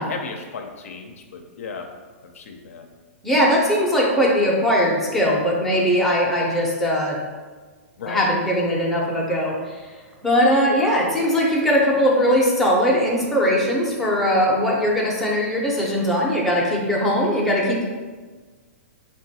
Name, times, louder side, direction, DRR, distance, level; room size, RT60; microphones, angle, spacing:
voice 1, 0.0-1.9 2.2-2.9 8.0-8.3, left 5 dB, 70° left, 4 dB, 0.4 m, -35 dB
voice 2, 3.2-7.2 8.1-9.9 10.2-17.9, equal, ahead, -5 dB, 0.5 m, -20 dB
3.8 x 2.2 x 2.7 m, 1.4 s
hypercardioid pair, 140°, 8 cm